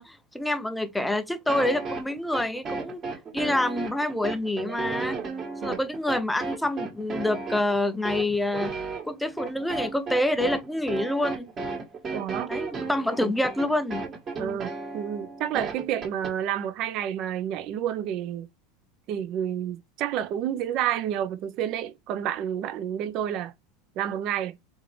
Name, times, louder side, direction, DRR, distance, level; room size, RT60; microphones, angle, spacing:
voice 1, 0.0-3.0 3.3-5.2 5.6-8.7 9.1-11.5 12.5-14.0, left 1 dB, 5° left, 0.5 m, -27 dB
sound 1, 1.5-16.3, right 4 dB, 25° right, 1.3 m, -34 dB
voice 2, 12.1-12.6 13.2-13.3 14.4-18.5 19.1-23.5 24.0-24.6, right 10 dB, 40° right, 0.7 m, -30 dB
4.0 x 3.5 x 3.2 m
supercardioid pair, 160°, 0 cm